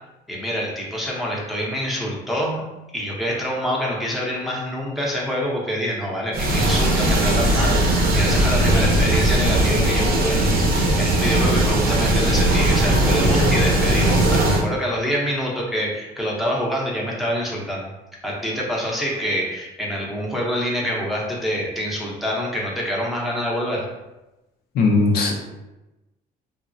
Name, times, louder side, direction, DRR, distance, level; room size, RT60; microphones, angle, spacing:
voice 1, 0.3-2.6 2.9-17.9 18.2-23.9, equal, ahead, -4 dB, 0.7 m, -26 dB
sound 1, 6.3-14.6, right 1 dB, 60° right, 0.6 m, -18 dB
voice 2, 24.7-25.3, left 3 dB, 65° left, 0 dB, 0.5 m, -18 dB
3.1 x 2.0 x 2.5 m, 1.0 s
cardioid pair, 110°, 17 cm